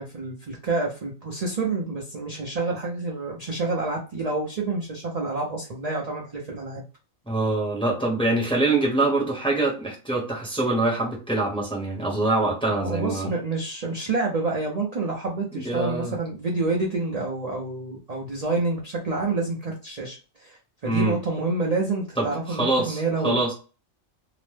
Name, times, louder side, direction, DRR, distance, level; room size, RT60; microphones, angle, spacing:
voice 1, 0.0-6.8 12.6-23.4, right 3 dB, 45° right, -2 dB, 0.5 m, -28 dB
voice 2, 7.3-13.3 15.5-16.2 20.8-21.2 22.2-23.5, right 2 dB, 5° left, -3 dB, 0.7 m, -24 dB
2.9 x 2.1 x 3.2 m, 0.35 s
omnidirectional pair, 1.4 m